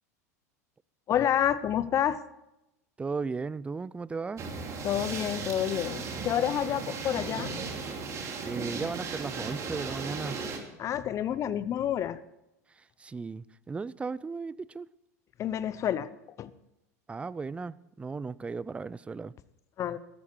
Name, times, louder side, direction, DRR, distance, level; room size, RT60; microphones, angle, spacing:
voice 1, 1.1-2.2 4.8-7.5 10.8-12.2 15.4-16.1 16.4-16.5 19.8-20.0, left 10 dB, 35° left, 0.8 m, -28 dB
voice 2, 3.0-4.4 8.4-10.4 12.8-14.9 17.1-19.3, right 4 dB, 15° right, 0.4 m, -36 dB
sound 1, 4.4-10.6, right 4 dB, 35° right, 2.6 m, -36 dB
14.0 x 12.0 x 4.7 m
hypercardioid pair, 85°, 9 cm